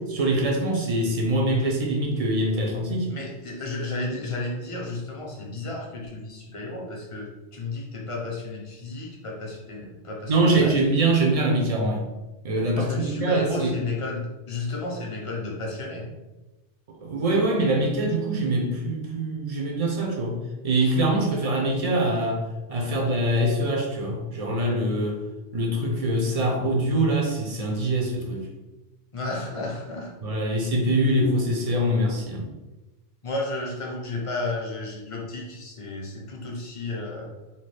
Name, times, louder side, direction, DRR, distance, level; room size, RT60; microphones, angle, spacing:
voice 1, 0.1-3.1 10.3-12.1 12.4-13.8 16.9-20.4 20.6-22.4 22.7-25.2 25.5-28.5 30.2-32.5, right 1 dB, 50° right, 0 dB, 0.4 m, -24 dB
voice 2, 3.1-10.7 12.8-16.1 29.1-30.4 33.2-37.3, left 2 dB, 35° left, -1 dB, 0.6 m, -33 dB
2.8 x 2.3 x 3.2 m, 1.1 s
omnidirectional pair, 1.2 m